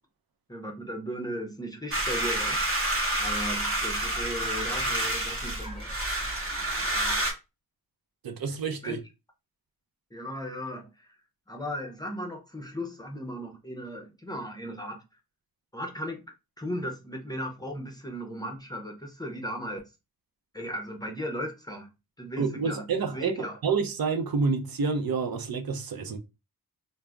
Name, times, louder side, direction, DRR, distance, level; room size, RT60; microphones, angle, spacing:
voice 1, 0.5-2.6 3.2-5.9 6.8-7.1 8.8-9.0 10.1-11.1 11.5-15.0 15.7-16.2 16.6-19.8 20.5-21.9 22.2-22.8 23.1-23.6, equal, 10° left, 0.5 m, -36 dB
sound 1, 1.9-7.3, right 1 dB, 35° right, 0.9 m, -29 dB
sound 2, 2.1-7.2, right 1 dB, 15° right, 1.0 m, -44 dB
voice 2, 8.2-9.0 22.4-26.2, right 5 dB, 70° right, 0.6 m, -28 dB
2.4 x 2.0 x 3.3 m
wide cardioid pair, 105°, 37 cm